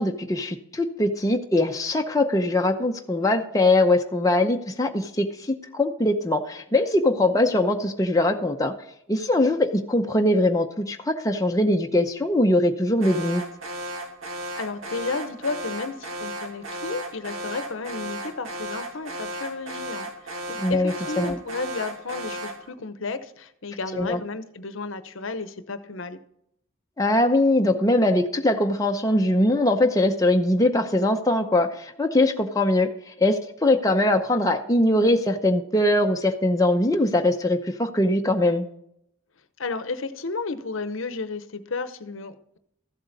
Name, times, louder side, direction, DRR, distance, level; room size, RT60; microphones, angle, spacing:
voice 1, 0.0-8.7 9.1-13.4 20.6-21.4 23.9-24.2 27.0-38.7, left 1 dB, 15° left, 3 dB, 0.7 m, -22 dB
Alarm, 13.0-22.7, right 1 dB, 75° right, 1.8 m, -35 dB
voice 2, 14.5-26.2 39.6-42.6, left 3 dB, 70° left, 12 dB, 0.8 m, -33 dB
14.5 x 7.8 x 4.0 m, 0.75 s
head